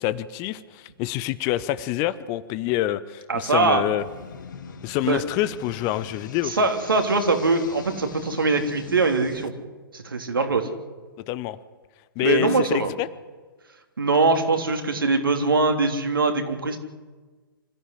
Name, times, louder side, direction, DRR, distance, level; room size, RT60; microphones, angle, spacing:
voice 1, 0.0-4.0 4.8-6.5 11.3-11.6 12.2-13.1, left 14 dB, 25° left, 16 dB, 0.9 m, -26 dB
voice 2, 3.3-3.9 5.0-5.2 6.4-9.5 9.9-10.7 12.2-12.9 14.0-16.8, right 3 dB, 70° right, 5 dB, 3.3 m, -22 dB
sound 1, 4.0-9.5, left 6 dB, 55° left, 2.3 m, -42 dB
26.5 x 14.5 x 10.0 m, 1.3 s
figure-of-eight pair, 120°, 12 cm